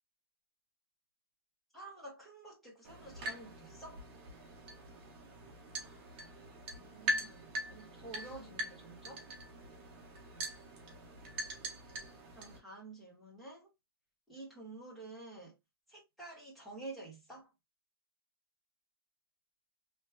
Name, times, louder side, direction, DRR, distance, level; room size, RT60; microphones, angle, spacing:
voice 1, 1.7-4.0 5.8-6.1 6.8-9.3 12.3-13.7 14.3-15.6 15.9-17.5, right 2 dB, ahead, 1.7 m, -50 dB
sound 1, 2.8-12.6, right 1 dB, 30° right, 1.2 m, -42 dB
3.2 x 3.1 x 2.3 m
hypercardioid pair, 160°, 13 cm